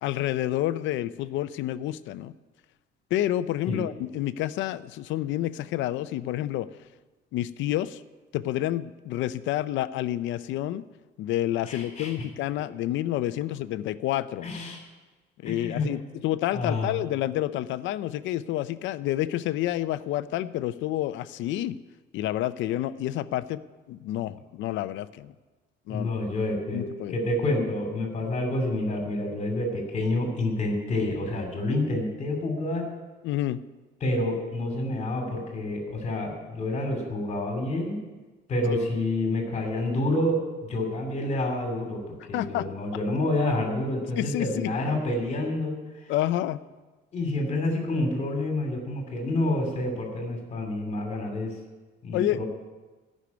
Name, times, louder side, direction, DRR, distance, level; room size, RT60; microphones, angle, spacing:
voice 1, 0.0-2.3 3.1-6.7 7.3-8.0 8.3-10.9 11.2-14.5 15.4-21.8 22.1-23.6 23.9-25.3 25.9-26.3 26.7-27.1 33.2-33.6 42.3-42.7 44.2-44.7 46.1-46.6 52.1-52.4, left 13 dB, 85° left, 14 dB, 0.6 m, -29 dB
voice 2, 11.7-12.1 14.4-14.8 15.4-15.9 16.5-17.0 25.9-26.8 27.1-32.8 34.0-38.0 38.5-46.1 47.1-51.6 52.0-52.4, left 1 dB, 35° left, 3 dB, 2.8 m, -28 dB
15.0 x 6.5 x 9.5 m, 1.3 s
cardioid pair, 160°, 19 cm